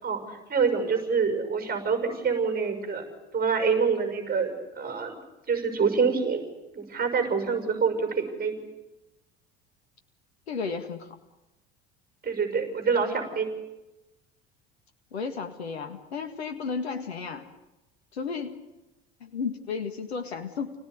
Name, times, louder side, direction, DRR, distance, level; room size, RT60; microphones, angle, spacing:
voice 1, 0.0-3.0 3.3-5.1 5.5-6.4 6.7-8.6 12.2-13.5, right 5 dB, 30° right, 6 dB, 6.2 m, -26 dB
voice 2, 10.5-11.1 15.1-17.5 18.1-18.6 19.2-20.7, left 5 dB, 85° left, 7 dB, 1.9 m, -33 dB
30.0 x 18.5 x 9.6 m, 1.0 s
figure-of-eight pair, 65°, 31 cm